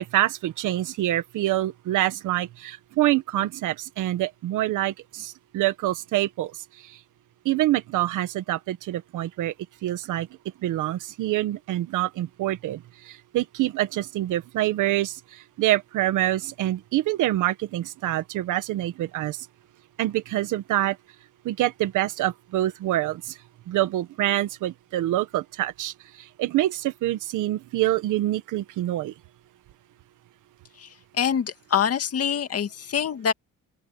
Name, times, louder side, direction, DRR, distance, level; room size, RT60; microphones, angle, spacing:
voice 1, 0.0-6.5 7.5-9.5 9.8-10.3 10.6-19.4 20.0-21.0 21.5-23.4 23.7-29.1, right 14 dB, 90° right, 1.7 m, -26 dB
voice 2, 31.1-33.3, left 8 dB, 50° left, 2.3 m, -25 dB
cardioid pair, 90°, 30 cm